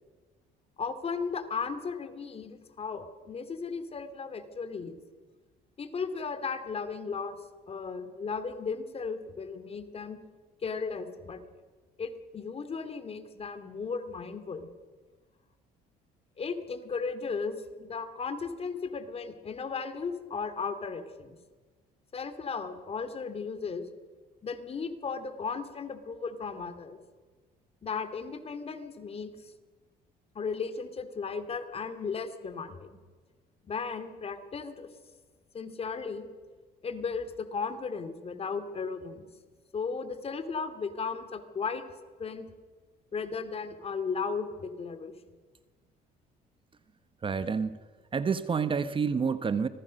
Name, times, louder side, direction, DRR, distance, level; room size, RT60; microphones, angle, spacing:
voice 1, 0.8-5.0 5.8-7.4 7.7-10.2 10.6-11.4 12.0-14.7 16.4-21.4 22.1-23.9 24.4-27.0 27.8-29.5 30.3-33.0 33.6-34.9 35.5-36.3 36.8-39.3 39.7-41.8 42.2-42.5 43.1-45.1, left 5 dB, 35° left, 9 dB, 2.5 m, -35 dB
voice 2, 47.2-47.8 48.1-49.7, right 5 dB, 30° right, 13 dB, 1.0 m, -28 dB
25.5 x 19.5 x 6.4 m, 1.4 s
cardioid pair, 110°, 17 cm